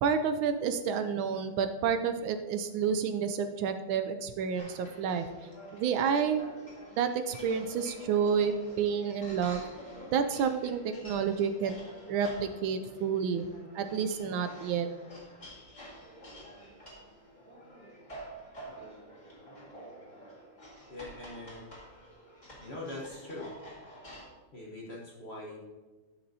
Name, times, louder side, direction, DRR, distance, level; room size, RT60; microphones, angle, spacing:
voice 1, 0.0-5.3 5.7-6.4 7.0-9.7 10.1-11.8 12.1-13.5 13.7-14.9, right 7 dB, 75° right, 9 dB, 1.3 m, -29 dB
sound 1, 4.6-24.3, equal, 20° left, 1.9 m, -49 dB
voice 2, 20.9-21.7 22.6-23.5 24.5-25.6, left 2 dB, 40° left, -4 dB, 1.1 m, -42 dB
12.5 x 6.0 x 2.7 m, 1.2 s
omnidirectional pair, 2.3 m